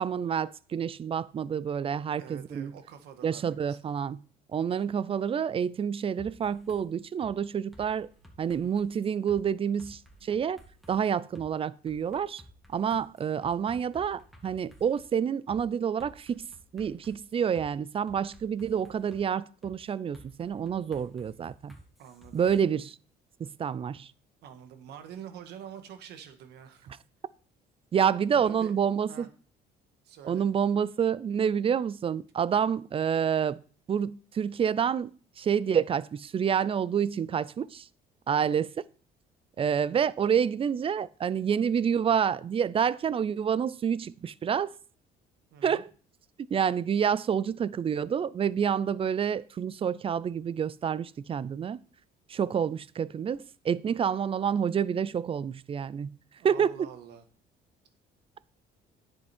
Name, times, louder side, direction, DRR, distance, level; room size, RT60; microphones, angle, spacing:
voice 1, 0.0-2.7 3.2-4.2 4.5-8.1 8.4-10.6 10.9-12.4 12.7-16.5 16.7-21.7 22.3-23.0 23.4-24.1 27.9-29.3 30.2-33.6 33.9-35.1 35.4-37.9 38.3-38.7 39.6-44.8 45.6-45.9 46.5-51.8 52.3-56.1 56.4-56.9, right 7 dB, 35° right, 0.5 m, -28 dB
voice 2, 2.2-3.8 22.0-22.4 24.4-26.9 28.3-28.7 29.0-29.3 30.0-30.4 38.3-38.6 45.5-45.9 56.4-57.2, right 8 dB, 80° right, 1.8 m, -46 dB
sound 1, 6.2-6.8 7.2-7.3 7.7-9.4 9.8-11.0 11.3-11.5 11.9-15.1 15.5-15.6 16.0-17.7 18.1-19.2 19.6-19.8 20.1-22.6, equal, ahead, 2.3 m, -53 dB
9.9 x 7.8 x 4.4 m
cardioid pair, 110°, 17 cm